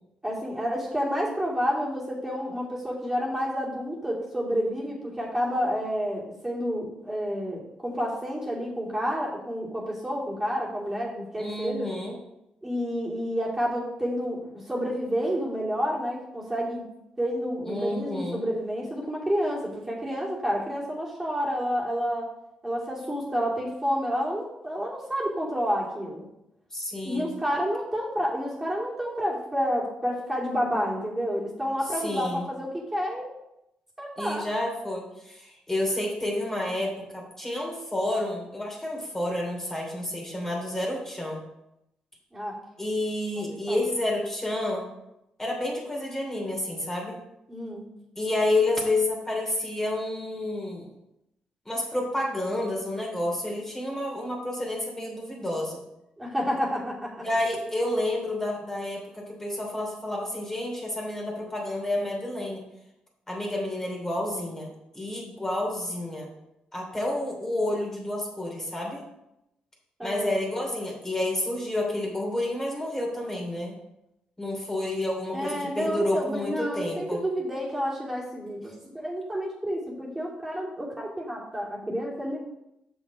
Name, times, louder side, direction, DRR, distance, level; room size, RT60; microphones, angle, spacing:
voice 1, 0.2-11.9 12.6-16.8 17.2-22.3 22.6-26.3 27.0-33.3 34.0-34.5 42.3-42.6 43.4-43.9 47.5-47.8 56.2-57.3 70.0-70.4 75.3-82.4, equal, 15° right, -5 dB, 2.9 m, -29 dB
voice 2, 11.4-12.1 17.7-18.4 26.7-27.3 32.0-32.5 34.2-41.4 42.8-44.9 45.4-47.2 48.2-50.8 51.6-55.8 57.2-62.6 63.3-64.7 64.9-66.3 66.7-69.0 70.0-73.7 74.4-77.2, left 1 dB, 15° left, -2 dB, 3.0 m, -29 dB
6.5 x 6.1 x 4.9 m, 0.85 s
supercardioid pair, 60°, 3 cm